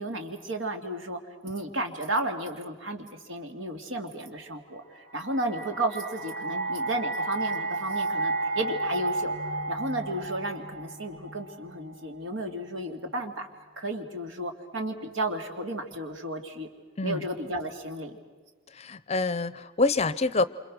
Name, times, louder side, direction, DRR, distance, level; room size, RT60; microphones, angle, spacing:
voice 1, 0.0-4.8 5.1-9.3 9.7-13.5 13.8-16.7 17.0-18.2, right 1 dB, 70° right, 5 dB, 2.6 m, -33 dB
sound 1, 4.9-12.0, right 2 dB, 40° right, 2.0 m, -32 dB
voice 2, 18.7-20.4, left 3 dB, 30° left, 16 dB, 0.7 m, -26 dB
28.0 x 27.0 x 6.2 m, 1.4 s
head